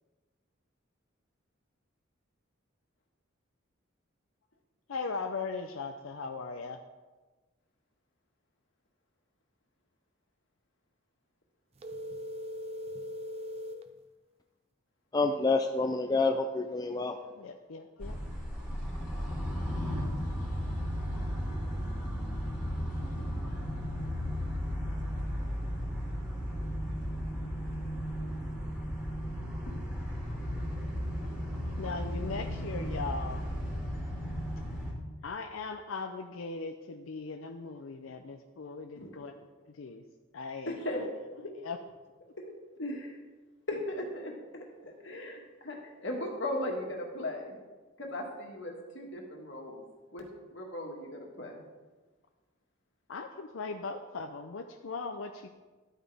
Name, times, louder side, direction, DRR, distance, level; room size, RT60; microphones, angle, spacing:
voice 1, 4.9-6.8 17.4-18.2 31.8-33.5 35.2-39.5 39.8-40.0 40.3-40.7 41.6-41.8 53.1-55.5, left 4 dB, 80° left, 5 dB, 0.5 m, -39 dB
sound 1, 11.8-13.9, equal, 30° right, 0.6 m, -40 dB
voice 2, 15.1-17.2, left 3 dB, 20° left, 5 dB, 0.4 m, -28 dB
sound 2, 18.0-34.9, equal, 5° right, 2.9 m, -35 dB
voice 3, 23.2-23.6 28.1-28.3 38.9-39.1 40.7-41.1 41.4-41.5 42.4-42.5 42.8-43.2 43.7-47.6 48.0-49.8 50.1-51.6, left 1 dB, 60° left, 1 dB, 1.8 m, -38 dB
12.0 x 8.8 x 3.5 m, 1.3 s
head